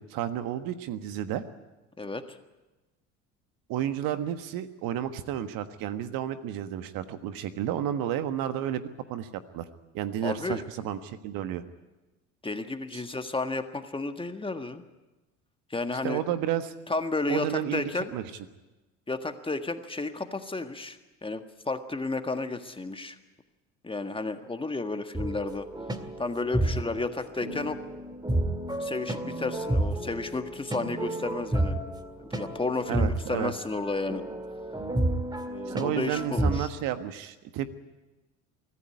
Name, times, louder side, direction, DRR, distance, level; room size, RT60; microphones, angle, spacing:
voice 1, 0.0-1.4 3.7-8.8 9.1-9.3 9.5-9.7 9.9-11.6 12.9-13.0 16.0-16.7 17.3-18.2 32.9-33.5 35.7-37.7, right 11 dB, 55° right, 10 dB, 1.5 m, -31 dB
voice 2, 2.0-2.4 10.2-10.7 12.4-14.8 15.7-16.2 16.9-18.1 19.1-23.2 23.8-25.7 26.2-27.8 28.8-31.8 32.2-34.2 35.4-36.7, left 3 dB, 15° left, 7 dB, 1.7 m, -32 dB
sound 1, 25.1-36.6, right 1 dB, 10° right, 1.9 m, -31 dB
24.0 x 14.5 x 9.6 m, 1.1 s
hypercardioid pair, 70°, 40 cm